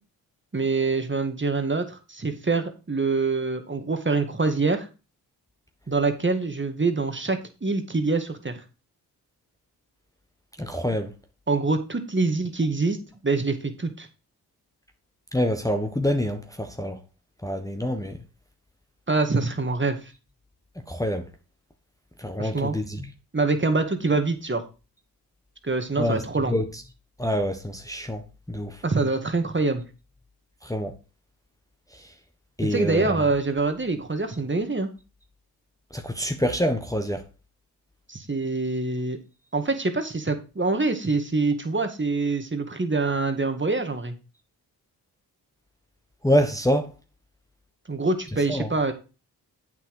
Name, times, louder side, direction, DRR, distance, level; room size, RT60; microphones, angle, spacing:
voice 1, 0.5-4.9 5.9-8.6 11.5-13.0 13.2-14.1 19.1-20.0 22.4-22.8 23.3-24.6 25.6-26.5 28.8-29.8 32.6-34.9 38.1-39.2 39.5-44.1 47.9-48.9, right 3 dB, 25° right, 1.9 m, -25 dB
voice 2, 10.6-11.1 15.3-17.0 17.4-18.2 20.9-21.2 22.2-23.1 26.0-26.2 26.5-26.6 27.2-28.2 28.5-28.8 30.6-30.9 32.6-33.2 35.9-37.2 46.2-46.9 48.5-48.7, equal, 10° left, 1.3 m, -26 dB
8.2 x 6.0 x 4.8 m
supercardioid pair, 40°, 42 cm